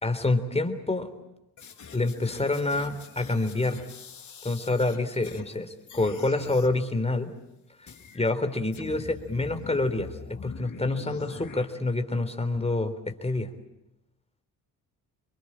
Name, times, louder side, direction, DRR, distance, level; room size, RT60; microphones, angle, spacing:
voice 1, 0.0-1.1 1.9-3.8 4.4-7.3 7.8-7.9 8.1-13.5, left 2 dB, 15° left, 8 dB, 3.7 m, -27 dB
sound 1, 1.6-5.6 5.9-6.8 7.9-8.3 8.7-11.6, left 6 dB, 50° left, 5.2 m, -44 dB
26.5 x 22.5 x 8.8 m, 0.93 s
supercardioid pair, 70°, 38 cm